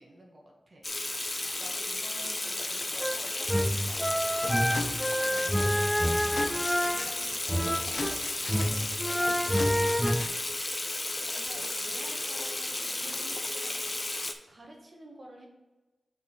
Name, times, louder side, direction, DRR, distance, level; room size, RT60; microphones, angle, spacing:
voice 1, 0.0-15.5, right 1 dB, 50° right, 0 dB, 1.6 m, -51 dB
Water tap faucet / Sink (filling or washing), 0.8-14.3, left 2 dB, 35° left, 0.7 m, -33 dB
sound 1, 3.0-8.2 8.5-10.3, equal, ahead, 0.3 m, -28 dB
sound 2, 4.0-10.5, left 3 dB, 70° left, 0.6 m, -40 dB
5.3 x 5.0 x 5.0 m, 1.1 s
wide cardioid pair, 65°, 0 cm